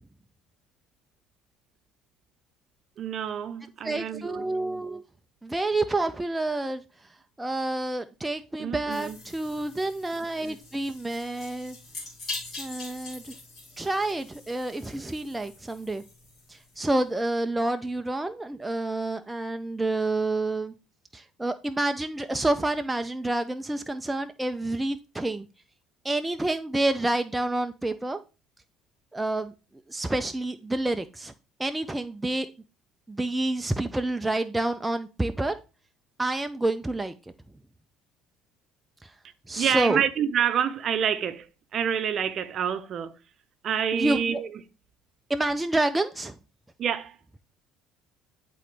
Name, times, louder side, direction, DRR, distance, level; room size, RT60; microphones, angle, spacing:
voice 1, 3.0-4.4 8.6-9.2 39.5-43.1 43.6-44.6 46.8-47.2, right 8 dB, 45° right, 0.6 m, -27 dB
voice 2, 3.8-5.0 5.4-6.8 7.4-11.8 12.6-13.3 13.8-16.0 16.5-20.7 21.1-25.5 26.0-28.2 29.1-29.5 29.9-31.3 31.6-32.5 33.1-35.5 36.2-37.1 39.0-39.1 39.5-40.0 43.9-44.2 45.3-46.4, right 2 dB, 10° right, 0.4 m, -28 dB
sound 1, 8.9-17.0, left 2 dB, 40° left, 2.6 m, -43 dB
9.9 x 3.8 x 3.3 m
cardioid pair, 130°, 0 cm